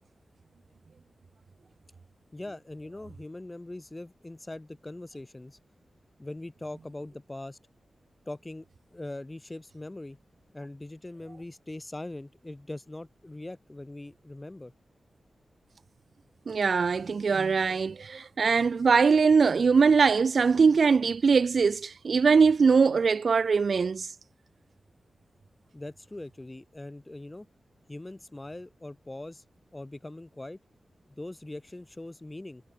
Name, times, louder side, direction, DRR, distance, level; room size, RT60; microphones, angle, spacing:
voice 1, 2.3-5.6 6.2-7.6 8.3-10.2 10.5-14.7 25.7-27.5 27.9-29.4 29.7-30.6 31.1-32.6, left 2 dB, 20° left, 6.6 m, -41 dB
voice 2, 16.5-24.1, right 5 dB, 60° right, 0.7 m, -22 dB
wide cardioid pair, 130°, 0 cm